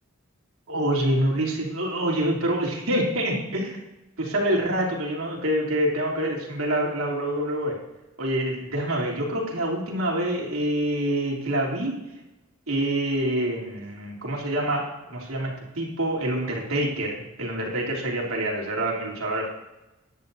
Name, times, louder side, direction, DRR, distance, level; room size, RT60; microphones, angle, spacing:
voice 1, 0.7-3.8 4.2-7.8 8.2-12.0 12.7-19.5, right 1 dB, 90° right, -3 dB, 3.2 m, -26 dB
15.5 x 10.5 x 2.7 m, 1.0 s
head